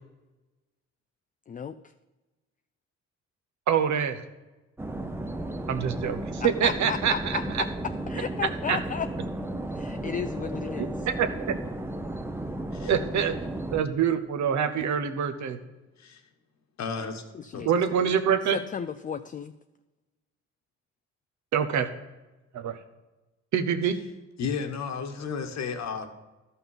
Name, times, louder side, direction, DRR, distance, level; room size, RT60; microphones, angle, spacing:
voice 1, 1.5-1.8 6.4-7.7 8.1-9.1 9.7-10.9 17.3-17.7 18.4-19.5, left 7 dB, 30° left, 9 dB, 0.4 m, -34 dB
voice 2, 3.7-4.2 5.7-7.6 8.7-8.8 11.1-11.5 12.8-13.4 13.7-15.6 17.6-18.6 21.5-21.9 22.5-22.8 23.5-24.0, right 8 dB, 70° right, 8 dB, 1.0 m, -25 dB
sound 1, 4.8-13.8, right 1 dB, 10° right, 0.7 m, -34 dB
voice 3, 16.8-17.2 17.5-17.7 24.4-26.1, left 5 dB, 60° left, 6 dB, 1.3 m, -33 dB
12.0 x 5.7 x 5.6 m, 1.1 s
cardioid pair, 90°, 30 cm